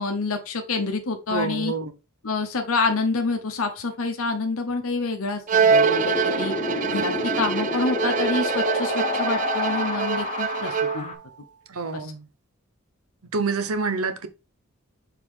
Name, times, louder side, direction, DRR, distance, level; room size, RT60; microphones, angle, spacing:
voice 1, 0.0-1.7 2.2-6.5 6.9-11.1 11.9-12.0, left 3 dB, 80° left, 0.9 m, -27 dB
voice 2, 1.3-1.9 11.7-12.3 13.3-14.3, right 4 dB, 80° right, 0.9 m, -27 dB
Bowed string instrument, 5.5-11.2, right 6 dB, 35° right, 0.3 m, -24 dB
Wind, 5.7-11.1, left 3 dB, 30° left, 1.0 m, -29 dB
6.9 x 3.7 x 3.7 m
head